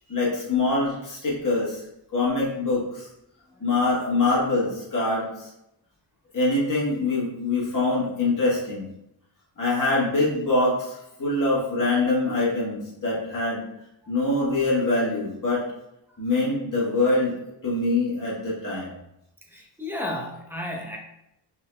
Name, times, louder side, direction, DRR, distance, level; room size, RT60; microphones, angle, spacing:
voice 1, 0.1-1.8 2.1-3.1 3.6-5.5 6.3-8.9 9.6-13.6 14.1-15.6 16.2-17.3 17.6-18.9, left 2 dB, 40° left, -6 dB, 1.4 m, -24 dB
voice 2, 19.5-21.0, left 1 dB, 5° right, -1 dB, 0.8 m, -33 dB
5.5 x 3.7 x 2.3 m, 0.84 s
wide cardioid pair, 85°, 46 cm